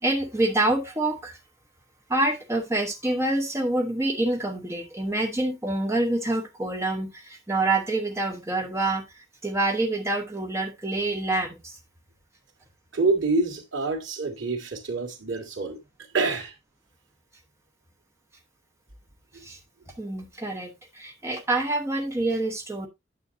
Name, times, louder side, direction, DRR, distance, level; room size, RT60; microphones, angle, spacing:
voice 1, 0.0-1.4 2.1-11.8 19.4-19.6 20.0-22.9, right 2 dB, 15° right, 1.0 m, -27 dB
voice 2, 12.9-15.8 16.1-16.5 19.3-19.5, right 3 dB, 90° right, 2.1 m, -26 dB
9.2 x 7.5 x 2.6 m
head